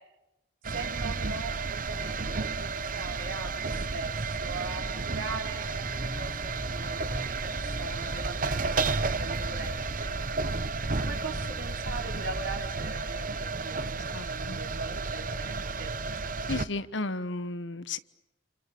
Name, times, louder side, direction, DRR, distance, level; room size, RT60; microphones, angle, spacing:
sound 1, 0.6-16.7, right 4 dB, 45° right, 0.9 m, -32 dB
voice 1, 0.7-9.7 10.0-10.2 11.0-15.9, right 3 dB, 85° right, 2 dB, 4.6 m, -40 dB
sound 2, 5.8-12.6, equal, 20° right, 5.0 m, -41 dB
voice 2, 14.1-14.6 16.5-18.0, left 2 dB, 75° left, 14 dB, 1.3 m, -34 dB
29.5 x 27.0 x 7.0 m, 0.93 s
head